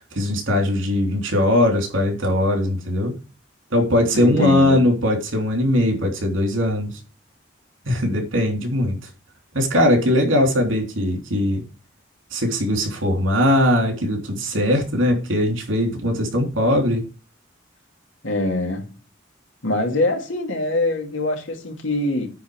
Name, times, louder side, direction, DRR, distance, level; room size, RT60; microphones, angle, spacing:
voice 1, 0.0-3.1 3.7-6.9 7.8-9.0 9.5-11.6 12.3-17.0, left 1 dB, 85° right, 3.2 m, -20 dB
voice 2, 4.1-4.8 18.2-18.9 19.6-22.3, left 2 dB, 85° left, 2.5 m, -23 dB
9.4 x 4.2 x 6.9 m
head